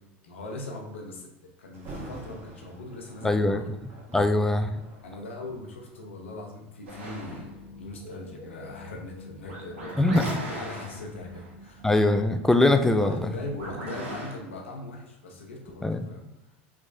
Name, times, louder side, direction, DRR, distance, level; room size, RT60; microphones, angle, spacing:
voice 1, 0.2-3.7 5.0-10.2 10.5-11.9 12.9-16.3, left 2 dB, 90° left, 1 dB, 0.7 m, -40 dB
Thunder, 1.7-6.7 7.4-7.6 8.2-11.0 11.4-11.5, right 2 dB, 35° right, 1.1 m, -47 dB
voice 2, 3.2-3.6 4.1-4.8 10.0-10.4 11.8-13.2 15.8-16.1, left 2 dB, 5° left, 8 dB, 0.3 m, -22 dB
sound 1, 6.9-14.4, equal, 85° right, 1.1 m, -40 dB
3.5 x 3.1 x 2.6 m, 0.92 s
hypercardioid pair, 90°, 7 cm